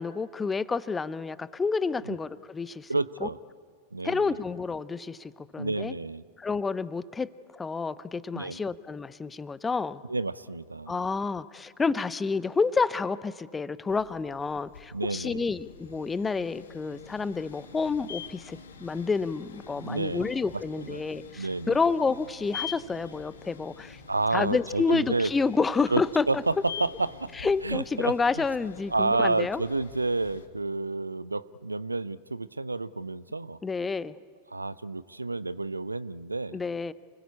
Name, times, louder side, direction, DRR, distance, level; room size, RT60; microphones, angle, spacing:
voice 1, 0.0-2.9 3.2-3.3 4.0-5.9 6.4-10.0 10.9-24.0 24.3-26.4 27.4-29.6 33.6-34.1 36.5-36.9, left 4 dB, 15° left, 17 dB, 0.7 m, -29 dB
voice 2, 2.9-3.4 3.9-4.4 5.6-6.2 8.3-8.6 10.1-10.9 14.9-15.5 19.8-20.3 20.8-21.0 21.4-21.8 24.1-25.3 25.9-26.0 26.3-28.1 28.9-33.6 34.5-36.6, right 3 dB, 80° right, 19 dB, 0.6 m, -30 dB
sound 1, 13.9-30.5, left 7 dB, 65° left, 1.8 m, -45 dB
29.5 x 21.0 x 8.5 m, 2.1 s
figure-of-eight pair, 90°, 0 cm